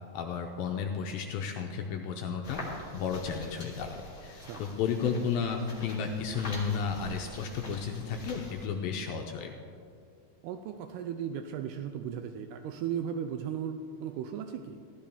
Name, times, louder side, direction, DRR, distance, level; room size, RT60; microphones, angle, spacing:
voice 1, 0.1-2.6 2.9-9.5, left 6 dB, 80° left, 3 dB, 2.2 m, -33 dB
sound 1, 2.4-8.7, left 1 dB, 20° left, 1.7 m, -45 dB
voice 2, 10.4-14.8, right 8 dB, 80° right, 7 dB, 2.5 m, -36 dB
15.5 x 12.5 x 3.5 m, 2.4 s
omnidirectional pair, 4.7 m